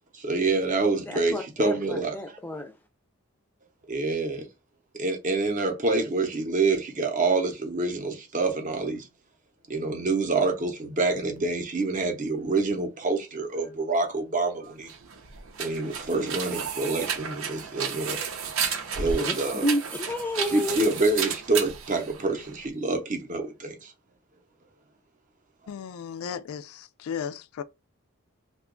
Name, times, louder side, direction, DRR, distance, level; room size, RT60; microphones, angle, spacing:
voice 1, 0.1-2.4 3.9-4.5 5.0-9.1 9.7-14.9 15.6-18.2 19.0-19.6 20.5-23.9, right 3 dB, 35° right, 0.7 m, -27 dB
voice 2, 1.1-2.7 19.0-20.9, equal, 10° left, 0.4 m, -31 dB
sound 1, 14.8-22.7, right 6 dB, 75° right, 0.6 m, -32 dB
voice 3, 25.7-27.6, left 7 dB, 85° left, 0.3 m, -35 dB
2.9 x 2.2 x 3.6 m
head